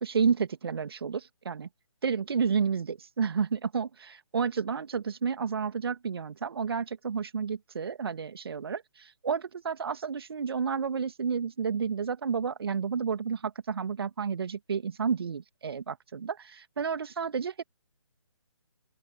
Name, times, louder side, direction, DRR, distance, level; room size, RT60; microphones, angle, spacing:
voice 1, 0.0-1.7 2.0-16.5 16.8-17.6, right 6 dB, 50° right, 2.0 m, -31 dB
open air
figure-of-eight pair, 140°, 16 cm